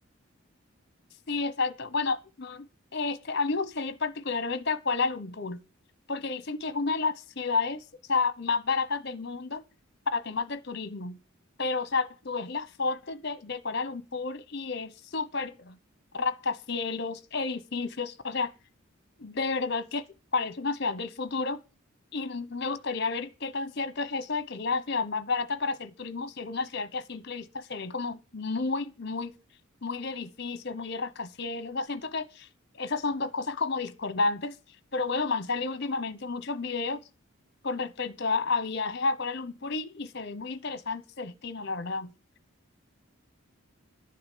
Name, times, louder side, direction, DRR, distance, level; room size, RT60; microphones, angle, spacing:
voice 1, 1.3-5.6 6.1-9.6 10.1-11.2 11.6-15.8 16.1-18.5 19.2-20.1 20.3-21.6 22.1-29.3 29.8-32.5 32.7-34.6 34.9-37.0 37.6-42.1, left 4 dB, 50° left, 1.1 m, -31 dB
11.5 x 6.7 x 8.5 m
head